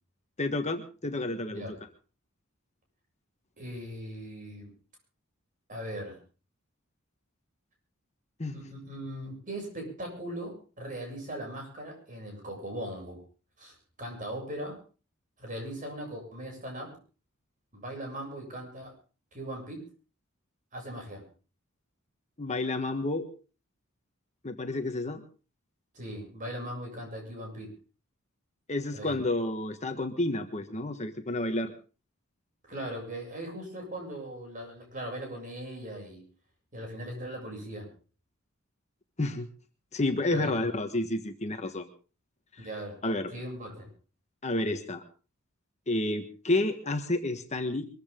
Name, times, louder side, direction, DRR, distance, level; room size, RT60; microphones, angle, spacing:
voice 1, 0.4-1.6 8.4-8.6 22.4-23.3 24.4-25.2 28.7-31.7 39.2-39.5 39.9-41.9 42.5-42.7 43.0-43.3 44.4-45.0 45.9-47.9, left 2 dB, 35° left, 7 dB, 1.4 m, -30 dB
voice 2, 3.6-4.7 5.7-6.2 8.5-13.2 13.6-14.8 15.4-16.9 17.7-18.9 19.3-19.8 20.7-21.2 25.9-27.7 28.9-29.2 32.7-36.2 36.7-37.9 40.3-40.6 42.6-43.0 43.3-43.9, right 1 dB, 40° right, 1 dB, 7.5 m, -39 dB
23.0 x 14.5 x 3.8 m, 0.36 s
head